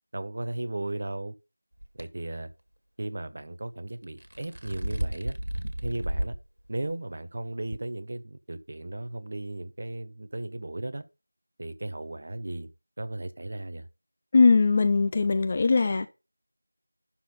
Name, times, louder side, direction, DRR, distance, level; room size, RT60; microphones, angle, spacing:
voice 1, 0.1-1.3 2.0-2.5 3.0-5.4 5.8-6.3 6.7-11.0 11.6-12.7 13.0-13.9, right 2 dB, 35° right, 0.8 m, -35 dB
sound 1, 1.8-2.0 4.0-6.4 6.9-7.0 7.7-7.8, right 1 dB, 80° right, 2.0 m, -32 dB
voice 2, 14.3-16.1, left 4 dB, 15° left, 0.3 m, -20 dB
11.5 x 4.3 x 5.4 m
figure-of-eight pair, 175°, 0 cm